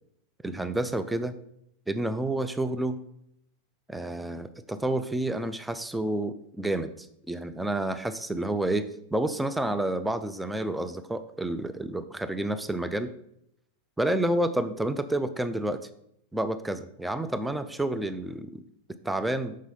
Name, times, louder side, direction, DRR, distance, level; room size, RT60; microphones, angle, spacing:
voice 1, 0.4-1.4 1.9-3.0 3.9-13.1 14.0-15.9 16.3-18.6 19.0-19.6, right 1 dB, 5° right, 10 dB, 0.4 m, -29 dB
6.1 x 5.5 x 4.3 m, 0.75 s
figure-of-eight pair, 90°, 0 cm